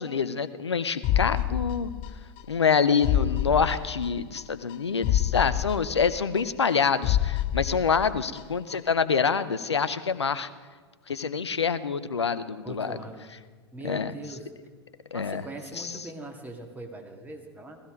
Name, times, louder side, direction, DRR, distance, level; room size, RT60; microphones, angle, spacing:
voice 1, 0.0-1.9 2.5-10.5 11.1-13.0 13.8-14.1 15.1-15.4 15.8-15.9, left 6 dB, 80° left, 14 dB, 0.7 m, -26 dB
sound 1, 1.0-2.4 2.7-2.8 3.0-4.4 4.7-4.8 5.0-6.7 7.0-8.4 8.7-8.8, left 12 dB, 40° left, 0.6 m, -27 dB
voice 2, 12.6-13.3 13.7-14.5 15.1-17.8, right 2 dB, 10° right, 2 dB, 2.4 m, -41 dB
17.5 x 15.5 x 5.2 m, 1.5 s
figure-of-eight pair, 90°, 14 cm